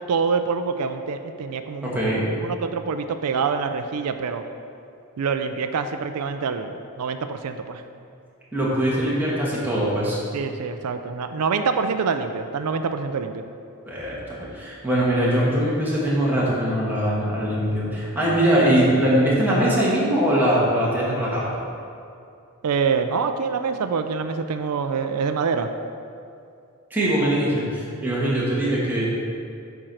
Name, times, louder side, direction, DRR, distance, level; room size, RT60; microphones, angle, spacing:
voice 1, 0.0-2.0 2.4-4.4 5.2-7.8 10.3-13.4 22.6-25.7, right 5 dB, 90° right, 8 dB, 0.4 m, -25 dB
voice 2, 1.8-2.2 8.5-10.2 13.9-21.5 26.9-29.1, right 1 dB, 10° right, -7 dB, 1.9 m, -22 dB
8.7 x 4.5 x 6.4 m, 2.5 s
head